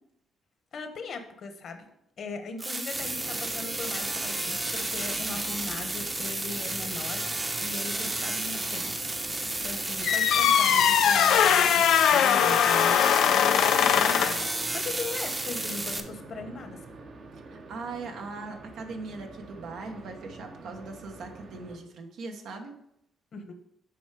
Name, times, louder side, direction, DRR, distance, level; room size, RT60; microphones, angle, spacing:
voice 1, 0.7-1.9 2.2-7.2 7.6-8.9 9.6-14.4 14.7-16.8 23.3-23.5, left 3 dB, 55° left, 7 dB, 1.1 m, -39 dB
sound 1, 2.6-16.0, right 2 dB, 20° right, 0.8 m, -32 dB
sound 2, 2.9-21.8, right 3 dB, 55° right, 1.0 m, -45 dB
sound 3, 10.0-14.5, left 9 dB, 80° left, 0.4 m, -21 dB
voice 2, 17.3-22.7, right 3 dB, 75° right, 4 dB, 1.1 m, -40 dB
7.1 x 4.5 x 4.8 m, 0.78 s
cardioid pair, 90°, 0 cm